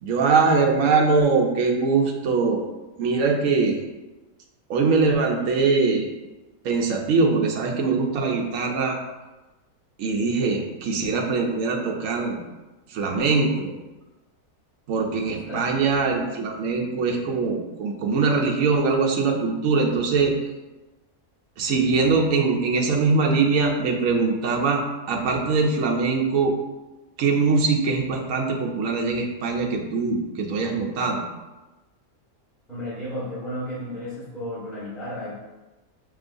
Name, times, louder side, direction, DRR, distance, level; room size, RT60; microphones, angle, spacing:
voice 1, 0.0-2.6 3.0-3.8 4.7-6.1 6.6-9.0 10.0-12.4 12.9-13.7 14.9-20.4 21.6-24.8 25.1-26.5 27.2-31.2, right 4 dB, 65° right, 1 dB, 1.0 m, -22 dB
voice 2, 15.3-15.7 32.7-35.4, equal, ahead, -11 dB, 1.1 m, -33 dB
5.5 x 3.0 x 2.6 m, 1.1 s
omnidirectional pair, 1.6 m